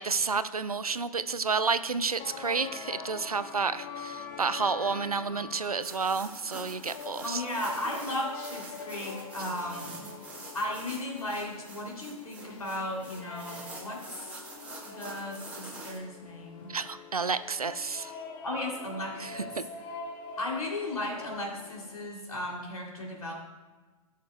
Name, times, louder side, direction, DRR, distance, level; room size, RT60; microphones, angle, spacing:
voice 1, 0.0-7.4 16.7-18.1 19.2-19.6, right 5 dB, 85° right, 14 dB, 0.5 m, -30 dB
sound 1, 2.2-22.1, left 5 dB, 35° left, 0.9 m, -44 dB
sound 2, 5.8-16.0, right 2 dB, 5° right, 1.8 m, -46 dB
voice 2, 7.2-10.1 10.5-14.4 14.8-16.7 18.4-19.5 20.4-23.3, left 1 dB, 75° left, -2 dB, 2.8 m, -35 dB
17.0 x 6.7 x 2.2 m, 1.3 s
figure-of-eight pair, 105°, 18 cm